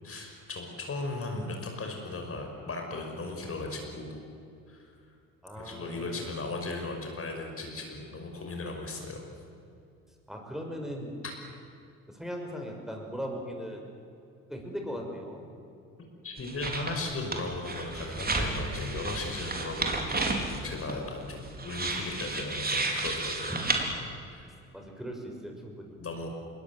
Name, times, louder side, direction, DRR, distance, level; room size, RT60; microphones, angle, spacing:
voice 1, 0.0-4.2 4.7-4.9 5.6-9.2 16.2-23.6 24.3-24.5 26.0-26.3, left 2 dB, 35° left, 2 dB, 5.7 m, -37 dB
voice 2, 5.4-6.3 10.3-11.1 12.1-13.8 14.5-15.4 23.8-23.9 24.7-25.9, equal, ahead, 1 dB, 6.2 m, -38 dB
Pages Turning One, 16.4-17.0 17.3-23.8, right 3 dB, 25° right, 4.8 m, -32 dB
27.0 x 22.5 x 8.1 m, 2.6 s
figure-of-eight pair, 55°, 40 cm